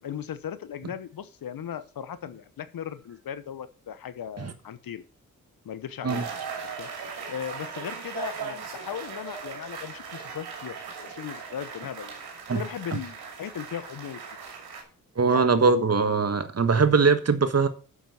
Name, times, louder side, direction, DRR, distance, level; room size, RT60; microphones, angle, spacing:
voice 1, 0.0-5.0 5.6-6.4 6.8-10.7 11.0-12.1 12.5-14.2 15.2-15.9, left 9 dB, 65° left, 1.1 m, -37 dB
sound 1, 6.1-14.8, right 5 dB, 85° right, 2.4 m, -38 dB
voice 2, 15.2-17.7, right 4 dB, 40° right, 1.4 m, -21 dB
7.3 x 7.1 x 6.9 m
supercardioid pair, 40°, 37 cm